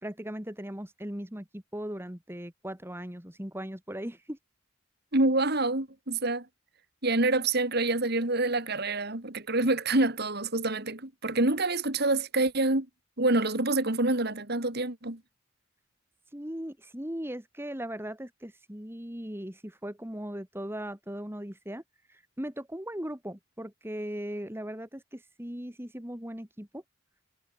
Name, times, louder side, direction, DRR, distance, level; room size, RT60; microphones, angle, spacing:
voice 1, 0.0-4.4 16.3-21.8 22.1-26.8, equal, 10° right, 2.5 m, -38 dB
voice 2, 5.1-6.4 7.0-12.9 13.2-15.2, right 2 dB, 55° right, 2.9 m, -27 dB
head